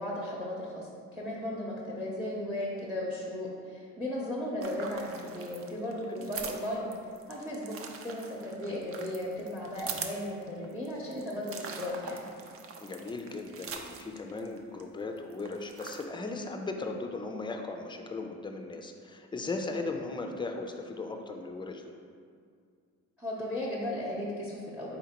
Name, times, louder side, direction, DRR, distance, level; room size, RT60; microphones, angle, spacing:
voice 1, 0.0-6.8 7.3-12.3 23.2-25.0, left 1 dB, 5° right, -5 dB, 0.7 m, -36 dB
sound 1, 4.6-14.8 15.2-16.1, right 5 dB, 50° right, 0.5 m, -43 dB
voice 2, 12.8-21.9, left 3 dB, 15° left, 4 dB, 0.4 m, -37 dB
4.4 x 3.8 x 2.9 m, 2.2 s
cardioid pair, 90°, 30 cm